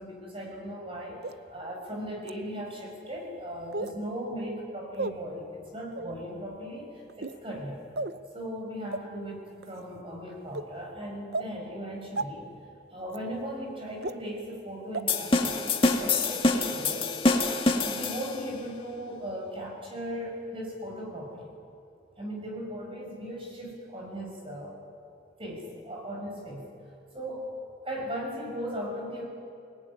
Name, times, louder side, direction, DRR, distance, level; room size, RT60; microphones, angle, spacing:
voice 1, 0.0-7.8 8.3-12.5 12.9-17.1 17.8-21.5 22.2-24.7 25.4-26.7 27.1-27.5 27.8-29.3, equal, 30° right, -1 dB, 6.0 m, -37 dB
sound 1, 1.2-1.3 2.2-2.3 3.7-4.0 4.9-5.1 5.9-6.1 7.1-7.4 8.0-8.2 8.9-9.0 9.6-9.8 10.5-10.6 11.3-11.5 12.2-12.3 13.1-13.2 14.0-14.1 14.9-15.0 15.5-15.6, right 3 dB, 60° right, 0.8 m, -33 dB
sound 2, 15.1-18.5, left 3 dB, 30° left, 1.9 m, -26 dB
28.0 x 19.0 x 9.9 m, 2.5 s
head